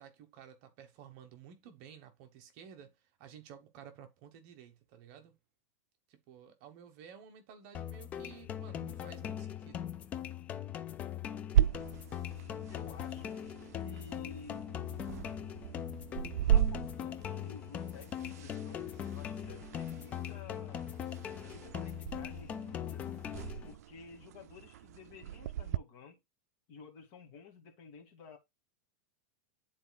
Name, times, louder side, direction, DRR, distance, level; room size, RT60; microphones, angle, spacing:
voice 1, 0.0-2.9 3.2-5.4 6.1-10.0, right 8 dB, 40° right, 1.2 m, -53 dB
sound 1, 7.7-23.7, left 9 dB, 15° left, 0.4 m, -41 dB
sound 2, 11.5-25.8, right 11 dB, 85° right, 0.4 m, -36 dB
voice 2, 12.7-13.4 13.8-14.7 16.5-20.9 21.5-23.1 23.6-26.2 26.7-28.4, left 5 dB, 40° left, 2.2 m, -53 dB
11.0 x 4.2 x 2.3 m
supercardioid pair, 175°, 8 cm